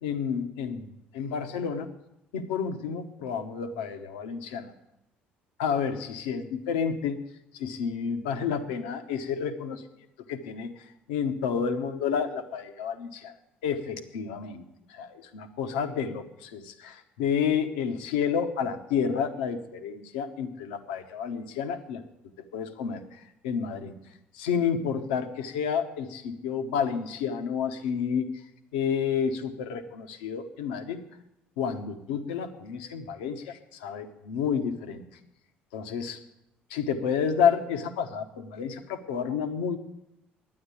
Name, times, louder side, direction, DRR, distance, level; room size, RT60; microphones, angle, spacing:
voice 1, 0.0-1.9 2.3-4.7 5.6-7.2 7.5-9.8 10.3-13.3 13.6-14.6 14.9-22.0 22.5-23.9 24.3-28.3 28.7-31.0 31.6-35.0 35.7-36.2 36.7-39.8, left 7 dB, 85° left, 7 dB, 1.0 m, -30 dB
11.0 x 9.4 x 8.5 m, 0.86 s
hypercardioid pair, 60°, 5 cm